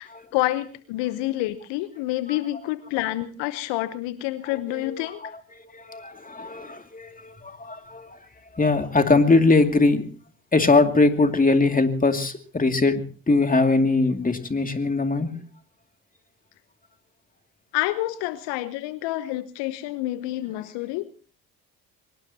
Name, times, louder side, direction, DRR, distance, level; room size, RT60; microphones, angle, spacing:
voice 1, 0.0-5.3 17.7-21.0, left 16 dB, 70° left, 14 dB, 1.0 m, -28 dB
voice 2, 4.4-8.2 8.5-10.1 10.5-15.4, left 3 dB, 20° left, 6 dB, 2.5 m, -22 dB
23.5 x 19.5 x 2.9 m, 0.38 s
hypercardioid pair, 55°, 44 cm